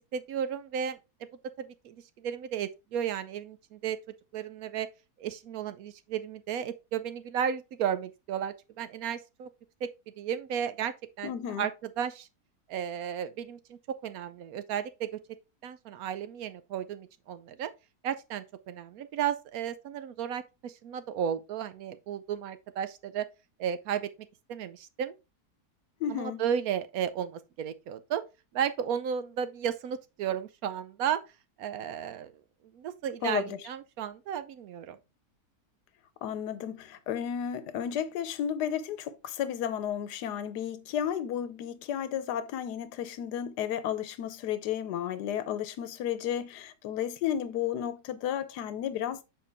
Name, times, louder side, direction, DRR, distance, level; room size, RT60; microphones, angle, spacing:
voice 1, 0.1-1.0 1.6-4.0 4.3-4.9 5.2-9.5 9.8-9.9 10.2-11.7 12.0-12.3 12.7-15.1 15.6-17.7 18.0-23.3 23.6-24.1 24.5-25.1 26.1-28.2 28.5-31.2 31.6-32.3 32.7-35.0, right 8 dB, 70° right, 1.0 m, -34 dB
voice 2, 11.2-11.7 26.0-26.4 33.2-33.6 36.2-49.2, left 9 dB, 85° left, 1.3 m, -33 dB
7.1 x 4.4 x 3.3 m
omnidirectional pair, 1.7 m